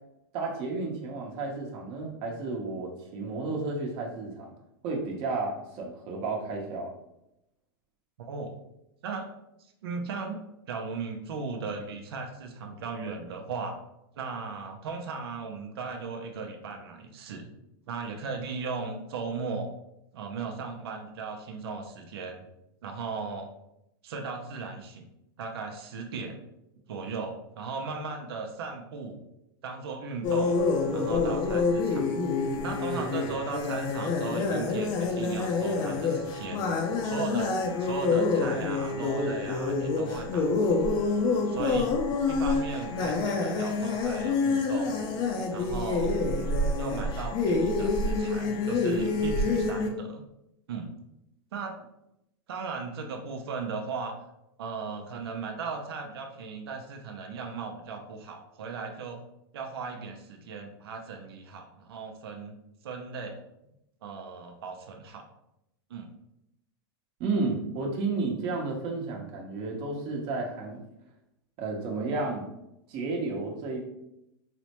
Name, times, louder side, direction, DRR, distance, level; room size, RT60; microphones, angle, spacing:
voice 1, 0.3-4.5 4.8-6.9 67.2-70.8 71.6-72.4 72.9-73.8, right 3 dB, 45° right, 0 dB, 0.8 m, -32 dB
voice 2, 8.2-8.5 9.0-9.3 9.8-10.4 10.7-13.8 14.2-17.5 17.9-19.7 20.1-22.4 22.8-23.5 24.0-25.1 25.4-26.4 26.9-29.2 29.6-30.6 30.9-32.1 32.6-36.6 37.0-37.5 37.8-40.8 41.5-41.9 42.3-45.0 45.5-46.2 46.8-50.2 50.7-50.9 51.5-51.8 52.5-54.2 54.6-59.2 59.5-62.5 62.8-63.4 64.0-65.2 65.9-66.1, right 4 dB, 80° right, 3 dB, 0.6 m, -37 dB
sound 1, 30.2-49.9, left 3 dB, 35° left, 0.6 m, -27 dB
4.1 x 2.1 x 2.9 m, 0.85 s
supercardioid pair, 125°, 13 cm